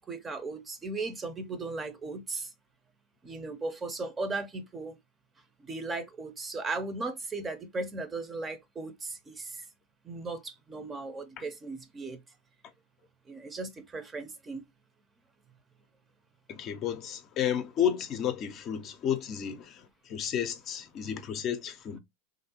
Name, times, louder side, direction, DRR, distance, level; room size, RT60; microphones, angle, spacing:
voice 1, 0.1-2.5 3.2-5.0 5.7-9.5 10.0-12.2 13.3-14.6, right 3 dB, 20° right, 0.6 m, -37 dB
voice 2, 16.5-22.0, left 9 dB, 40° left, 0.6 m, -32 dB
3.2 x 2.6 x 2.8 m
hypercardioid pair, 100°, 0 cm